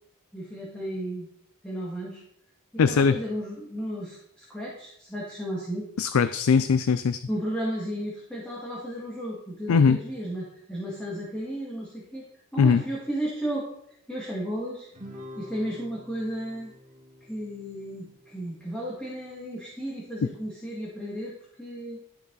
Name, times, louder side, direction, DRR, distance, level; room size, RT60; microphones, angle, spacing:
voice 1, 0.3-1.3 1.6-2.2 2.7-5.9 6.6-6.7 7.3-12.3 12.5-13.7 14.1-14.9 15.4-16.7 17.3-22.0, right 1 dB, 5° left, -6 dB, 2.2 m, -34 dB
voice 2, 2.8-3.2 6.0-7.2 9.7-10.0 12.6-12.8, left 5 dB, 75° left, 12 dB, 0.4 m, -20 dB
Guitar, 14.9-19.6, left 1 dB, 35° right, 2.1 m, -47 dB
12.5 x 6.9 x 4.1 m, 0.74 s
head